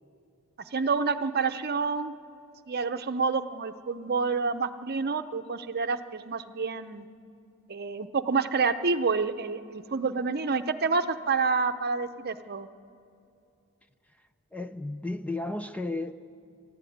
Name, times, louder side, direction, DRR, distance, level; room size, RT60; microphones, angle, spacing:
voice 1, 0.7-2.1 2.7-7.1 7.7-12.7, right 4 dB, 45° right, 0.8 m, -28 dB
voice 2, 14.5-16.1, left 2 dB, 5° left, 0.5 m, -33 dB
28.0 x 12.0 x 9.3 m
head